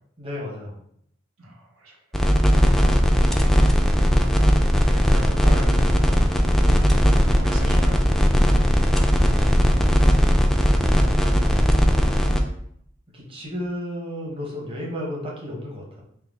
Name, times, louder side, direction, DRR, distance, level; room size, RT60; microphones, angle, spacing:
voice 1, 0.2-0.8 13.1-16.0, left 1 dB, 25° right, -3 dB, 0.9 m, -33 dB
voice 2, 1.4-2.3 3.9-5.9 6.3-8.1, right 1 dB, 80° right, -1 dB, 0.9 m, -40 dB
sound 1, 2.1-12.4, equal, ahead, 0.3 m, -18 dB
5.7 x 2.0 x 3.5 m, 0.71 s
head